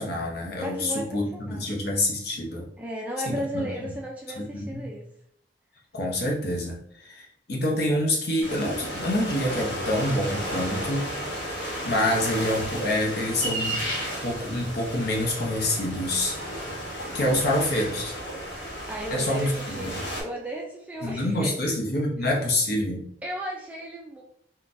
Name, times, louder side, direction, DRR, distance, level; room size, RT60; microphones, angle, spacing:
voice 1, 0.0-2.7 3.3-3.9 4.4-4.8 5.9-11.1 11.6-13.8 14.2-16.4 17.1-18.1 19.1-20.0 21.0-23.1, left 1 dB, 60° left, 0 dB, 0.7 m, -27 dB
voice 2, 0.6-1.7 2.8-5.0 17.2-17.5 18.9-21.5 22.2-22.4 23.2-24.2, equal, 10° right, -1 dB, 0.3 m, -35 dB
sound 1, 8.4-20.2, equal, 75° left, 1.1 m, -33 dB
3.8 x 2.2 x 2.5 m, 0.66 s
head